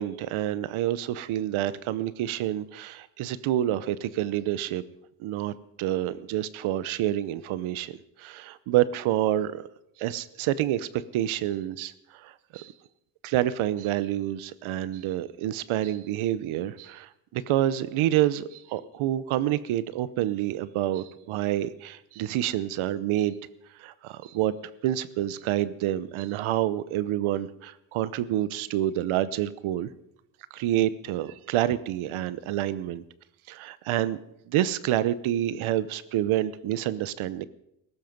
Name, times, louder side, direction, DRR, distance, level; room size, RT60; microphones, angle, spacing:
voice 1, 0.0-4.8 5.2-9.6 10.0-12.7 13.2-23.4 23.7-24.5 24.8-29.9 30.5-33.0 33.5-34.2 34.5-37.5, right 13 dB, 90° right, 16 dB, 0.9 m, -28 dB
18.0 x 15.5 x 5.2 m, 0.79 s
cardioid pair, 120°, 47 cm